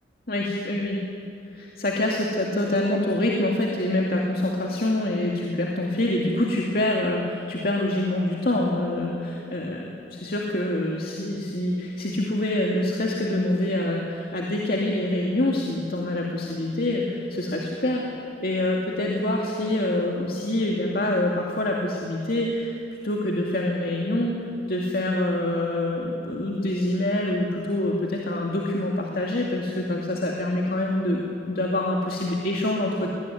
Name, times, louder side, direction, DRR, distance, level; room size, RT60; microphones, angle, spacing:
voice 1, 0.3-1.0 1.5-22.7 23.0-24.3 24.7-33.1, left 1 dB, 55° left, -1 dB, 2.4 m, -26 dB
22.0 x 20.5 x 9.4 m, 2.8 s
head